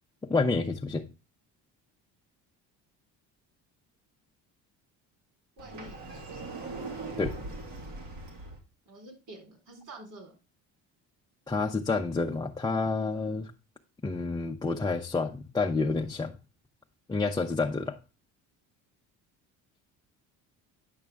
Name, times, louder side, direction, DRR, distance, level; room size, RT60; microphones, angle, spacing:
voice 1, 0.2-1.0 7.2-7.3 11.5-13.5 14.0-16.3 17.1-18.0, left 3 dB, 10° left, 0.6 m, -29 dB
voice 2, 5.6-6.6 8.9-10.3, right 1 dB, 55° right, 3.9 m, -48 dB
Sliding door, 5.6-8.6, right 2 dB, 70° right, 2.6 m, -40 dB
9.4 x 5.9 x 3.4 m
cardioid pair, 120°, 35 cm